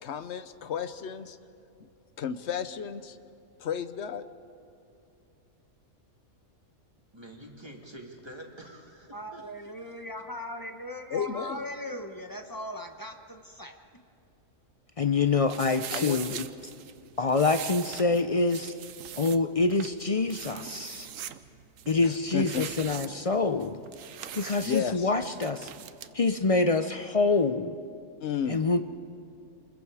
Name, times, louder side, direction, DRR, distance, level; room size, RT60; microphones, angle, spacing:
voice 1, 0.0-1.4 2.2-3.2 3.6-4.2 11.1-11.6 15.9-16.4 22.0-22.6 24.6-25.1 28.2-28.6, left 8 dB, 60° left, 12 dB, 1.0 m, -33 dB
voice 2, 7.1-10.0, right 1 dB, 20° right, 0 dB, 2.4 m, -47 dB
voice 3, 9.1-13.8, equal, 15° left, 5 dB, 1.0 m, -39 dB
voice 4, 15.0-16.3 17.2-18.7 19.2-21.1 21.9-23.8 24.3-25.7 26.1-27.8 28.5-28.8, left 3 dB, 45° left, 9 dB, 0.4 m, -26 dB
sound 1, 15.5-26.1, right 10 dB, 90° right, 1.1 m, -42 dB
28.0 x 21.5 x 4.9 m, 2.6 s
omnidirectional pair, 1.3 m